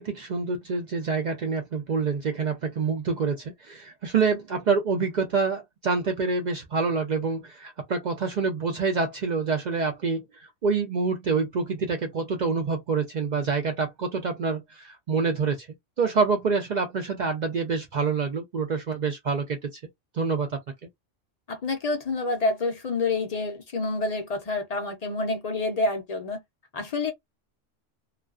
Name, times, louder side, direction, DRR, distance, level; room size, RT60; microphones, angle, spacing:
voice 1, 0.0-10.2 10.6-15.7 16.0-19.6 20.1-20.6, right 4 dB, 65° right, 0.4 m, -26 dB
voice 2, 21.5-26.4 26.7-27.1, left 3 dB, 50° left, 0.5 m, -28 dB
2.3 x 2.3 x 2.3 m
omnidirectional pair, 1.2 m